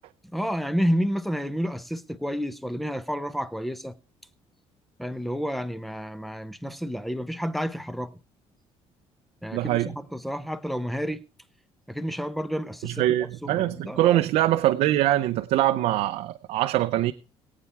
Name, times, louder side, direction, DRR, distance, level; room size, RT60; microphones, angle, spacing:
voice 1, 0.3-4.0 5.0-8.1 9.4-11.2 11.9-13.0 13.4-14.3, equal, ahead, 0.6 m, -30 dB
voice 2, 9.5-9.9 12.8-17.1, right 14 dB, 80° right, 0.6 m, -23 dB
22.5 x 8.5 x 3.4 m
cardioid pair, 165°, 11 cm